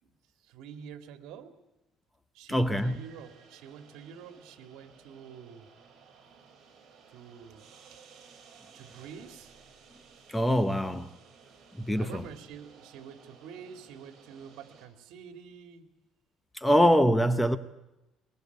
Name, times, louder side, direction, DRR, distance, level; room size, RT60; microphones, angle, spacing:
voice 1, 0.4-1.6 2.3-5.7 7.1-8.0 8.7-9.5 10.7-10.8 12.0-15.9, right 7 dB, 75° right, 2.4 m, -47 dB
voice 2, 2.5-3.0 10.3-11.1 11.8-12.2 16.5-17.6, equal, 5° left, 0.9 m, -24 dB
sound 1, 2.7-14.9, right 5 dB, 35° right, 5.6 m, -57 dB
23.0 x 21.5 x 8.1 m
cardioid pair, 155°, 0 cm